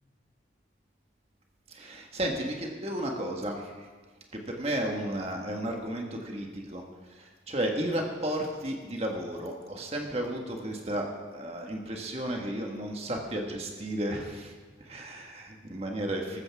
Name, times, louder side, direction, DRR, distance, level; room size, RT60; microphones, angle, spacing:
voice 1, 1.7-3.9 4.5-6.8 7.2-11.1 11.3-14.5 14.8-16.4, right 1 dB, 35° right, 1 dB, 1.6 m, -33 dB
14.5 x 14.0 x 3.6 m, 1.4 s
head